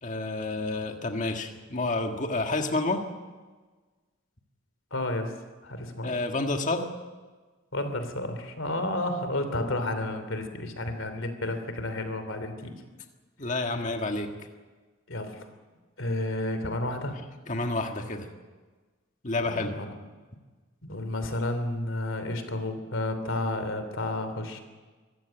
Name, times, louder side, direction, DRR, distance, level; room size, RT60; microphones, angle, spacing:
voice 1, 0.0-3.0 6.0-6.9 13.4-14.3 17.5-18.3 19.2-19.8, left 2 dB, 35° left, 4 dB, 1.8 m, -29 dB
voice 2, 4.9-5.3 5.6-6.1 7.7-12.7 15.1-15.5 16.0-17.2 19.5-19.9 20.8-24.6, left 1 dB, 70° left, 8 dB, 3.0 m, -31 dB
25.0 x 15.0 x 9.0 m, 1.3 s
head